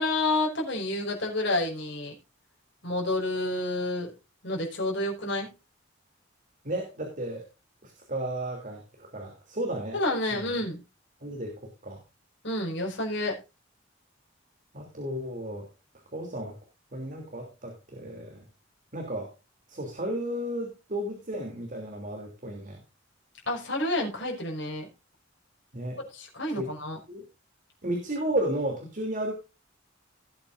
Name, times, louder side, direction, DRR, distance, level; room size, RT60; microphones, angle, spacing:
voice 1, 0.0-2.1 2.8-4.1 4.4-5.5 9.9-10.8 12.4-13.4 23.5-24.9 26.1-27.0, left 2 dB, 65° left, -1 dB, 5.3 m, -29 dB
voice 2, 6.6-7.5 7.8-10.0 10.3-10.5 11.2-12.0 14.7-15.7 16.1-16.6 16.9-18.4 18.9-19.3 19.7-22.8 25.7-26.0 26.5-26.7 27.1-27.2 27.8-29.3, right 1 dB, 40° right, 1 dB, 3.1 m, -33 dB
18.5 x 8.7 x 2.6 m, 0.28 s
head